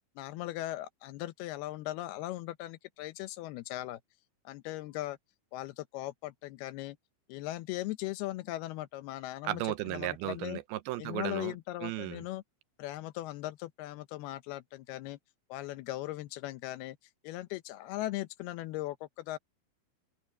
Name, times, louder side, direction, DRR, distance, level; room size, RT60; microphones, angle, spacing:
voice 1, 0.2-4.0 4.5-5.2 5.5-7.0 7.3-10.6 11.0-12.4 12.8-15.2 15.5-17.0 17.2-19.4, left 16 dB, 85° left, 2.7 m, -39 dB
voice 2, 9.4-11.6 11.8-12.2, right 16 dB, 85° right, 2.6 m, -35 dB
open air
omnidirectional pair, 4.5 m